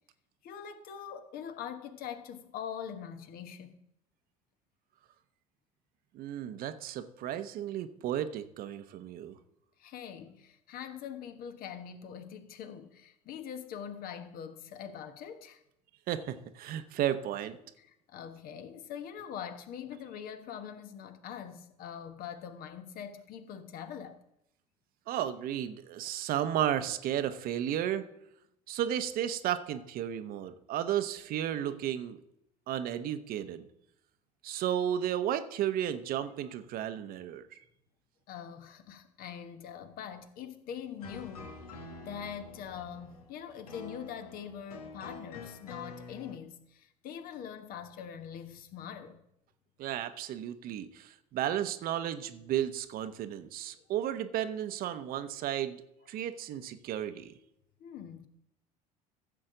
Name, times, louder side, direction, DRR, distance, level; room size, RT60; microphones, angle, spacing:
voice 1, 0.4-3.7 9.8-15.6 17.8-24.2 38.3-41.6 42.0-49.2 57.8-58.3, left 8 dB, 50° left, 1.2 m, -43 dB
voice 2, 6.1-9.4 16.1-17.6 25.1-28.0 28.7-32.2 32.7-33.6 34.4-37.6 49.8-55.8 56.1-57.3, right 10 dB, 50° right, 0.9 m, -33 dB
sound 1, 41.0-46.4, left 3 dB, 80° left, 1.4 m, -47 dB
15.0 x 7.6 x 3.8 m
figure-of-eight pair, 65°, 19 cm